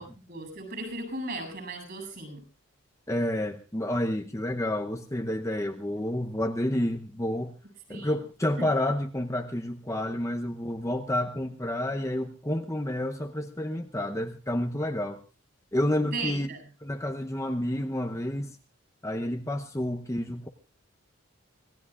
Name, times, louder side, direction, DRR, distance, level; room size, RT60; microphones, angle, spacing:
voice 1, 0.0-2.4 7.9-8.2 8.6-8.7 16.1-16.6, right 2 dB, 45° right, 7.8 m, -36 dB
voice 2, 3.1-7.6 7.9-15.2 15.7-16.5 16.8-18.6 19.0-20.5, left 1 dB, 15° left, 0.7 m, -29 dB
25.5 x 18.0 x 2.5 m
head